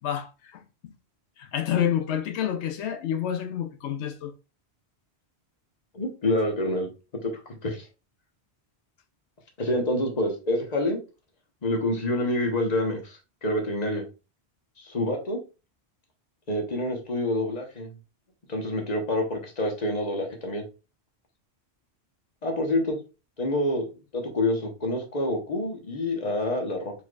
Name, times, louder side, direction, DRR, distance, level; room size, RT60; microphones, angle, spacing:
voice 1, 0.0-0.6 1.4-4.3, left 9 dB, 90° left, 0.9 m, -28 dB
voice 2, 5.9-6.9 7.2-7.9 9.6-11.0 11.6-14.0 14.8-15.4 16.5-17.9 18.5-20.6 22.4-23.0 23.4-23.8 24.1-26.9, left 1 dB, 40° left, 1.2 m, -27 dB
4.5 x 4.5 x 2.4 m
omnidirectional pair, 1.1 m